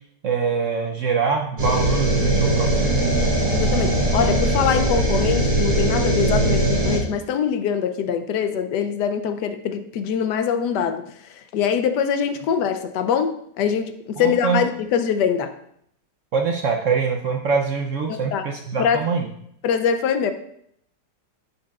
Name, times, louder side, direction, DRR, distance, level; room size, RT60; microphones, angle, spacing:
voice 1, 0.2-3.3 14.2-14.6 16.3-19.3, right 5 dB, 65° right, 2 dB, 0.8 m, -24 dB
sound 1, 1.6-7.0, right 1 dB, 25° right, 2.1 m, -20 dB
voice 2, 3.5-11.0 11.3-15.5 18.1-18.4 18.8-19.0 19.6-20.3, left 7 dB, 75° left, 9 dB, 1.2 m, -23 dB
10.5 x 6.9 x 2.4 m, 0.71 s
omnidirectional pair, 1.9 m